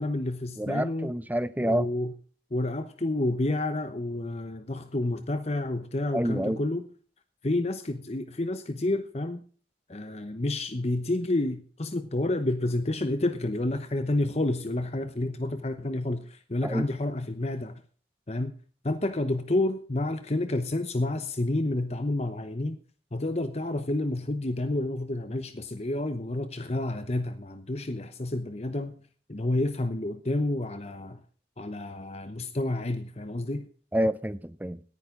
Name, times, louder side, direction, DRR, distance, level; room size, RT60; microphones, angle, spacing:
voice 1, 0.0-1.1 1.6-2.1 2.5-6.8 7.4-9.4 9.9-17.8 18.3-18.5 18.8-22.8 23.1-29.0 29.3-31.2 31.6-33.7, left 2 dB, 35° left, 0.9 m, -29 dB
voice 2, 0.6-1.9 6.1-6.6 16.6-16.9 33.9-34.8, right 1 dB, 10° right, 0.6 m, -28 dB
18.0 x 10.5 x 3.8 m
head